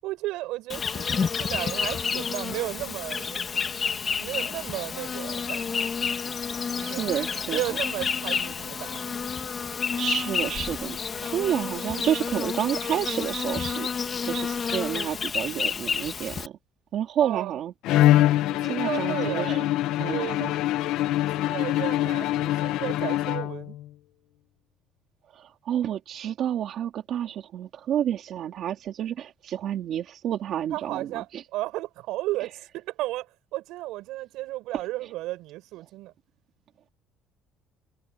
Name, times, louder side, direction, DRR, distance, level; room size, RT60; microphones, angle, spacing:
voice 1, 0.0-3.4 4.2-5.9 6.8-7.2 7.5-9.1 17.2-17.6 18.5-19.6 20.1-20.6 21.2-23.8 30.7-31.3 31.5-36.1, right 17 dB, 70° right, 7.0 m, -34 dB
Insect, 0.7-16.5, left 6 dB, 25° left, 1.7 m, -30 dB
voice 2, 6.8-7.6 10.0-13.9 14.2-16.6 16.9-17.7 18.6-19.7 20.0-20.5 25.3-31.4 35.0-35.1, right 10 dB, 45° right, 2.7 m, -30 dB
Bowed string instrument, 17.8-23.9, left 14 dB, 65° left, 1.1 m, -24 dB
cardioid pair, 165°, 0 cm